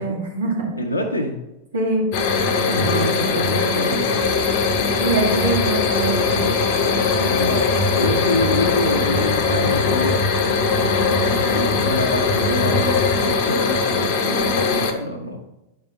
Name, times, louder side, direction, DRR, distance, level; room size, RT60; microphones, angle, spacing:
voice 1, 0.0-0.7 1.7-2.1 5.0-6.5, right 2 dB, 70° right, -2 dB, 2.3 m, -23 dB
voice 2, 0.8-1.4 2.6-4.1 7.0-10.1 10.9-15.4, left 1 dB, 85° left, -1 dB, 0.8 m, -26 dB
sound 1, 2.1-14.9, left 4 dB, 45° left, 0.9 m, -20 dB
sound 2, 4.2-13.3, left 7 dB, 50° right, 2.9 m, -37 dB
9.7 x 5.3 x 3.8 m, 0.93 s
figure-of-eight pair, 90°, 0 cm